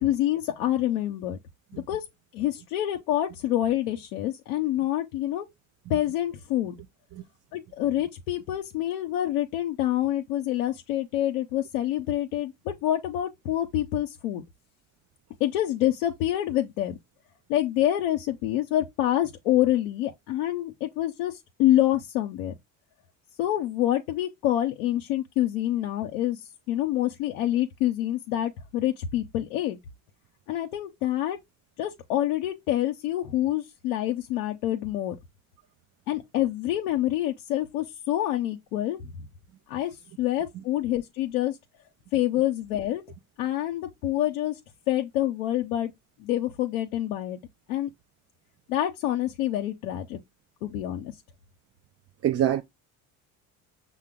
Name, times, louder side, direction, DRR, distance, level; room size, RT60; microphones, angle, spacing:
voice 1, 0.0-1.4 1.7-2.0 2.3-5.5 5.9-6.7 7.5-14.4 15.4-16.9 17.5-22.5 23.4-29.8 30.5-31.4 31.8-35.2 36.1-39.1 39.7-41.6 42.1-43.0 43.4-44.6 44.9-45.9 46.2-47.4 47.7-47.9 48.7-50.2 50.6-51.1, left 13 dB, 85° left, 0.6 m, -27 dB
voice 2, 52.2-52.6, right 11 dB, 35° right, 0.4 m, -25 dB
5.6 x 2.1 x 3.5 m
hypercardioid pair, 70°, 42 cm